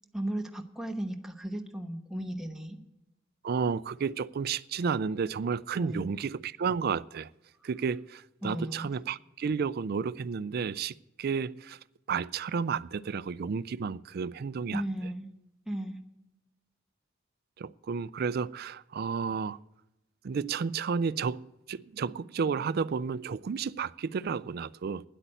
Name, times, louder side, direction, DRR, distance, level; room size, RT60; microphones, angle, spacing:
voice 1, 0.1-2.8 5.7-6.2 8.4-8.9 14.7-15.3 15.7-16.0, right 1 dB, 5° right, 1.0 m, -35 dB
voice 2, 3.4-7.3 7.6-11.8 12.1-14.8 17.6-19.6 20.2-25.0, right 5 dB, 50° right, 0.4 m, -32 dB
10.0 x 8.3 x 9.0 m
head